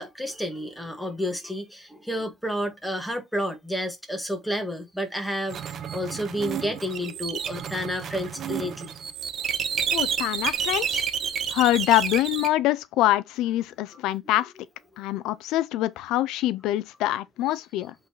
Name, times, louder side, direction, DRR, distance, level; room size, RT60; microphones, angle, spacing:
voice 1, 0.0-8.9, equal, ahead, 1.8 m, -30 dB
sound 1, 5.5-12.5, right 8 dB, 50° right, 1.1 m, -30 dB
voice 2, 9.9-11.0 11.5-14.5 15.0-17.9, left 15 dB, 85° left, 0.4 m, -24 dB
7.8 x 4.0 x 3.1 m
cardioid pair, 125°, 0 cm